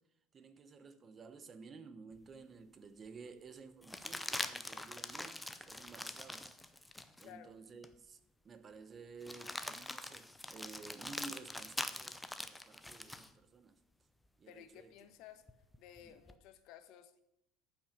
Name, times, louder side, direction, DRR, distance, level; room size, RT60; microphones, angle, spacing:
voice 1, 0.3-6.5 7.2-8.2 8.4-13.8 14.4-14.9 16.0-16.1, right 4 dB, 30° right, 0.9 m, -53 dB
sound 1, 2.3-2.4 3.8-7.3 7.8-7.9 9.2-13.3 15.5-16.4, left 1 dB, 5° left, 0.6 m, -44 dB
voice 2, 7.2-7.5 14.5-15.4 15.8-17.2, left 10 dB, 65° left, 1.1 m, -55 dB
13.5 x 6.0 x 5.9 m
cardioid pair, 140°, 0 cm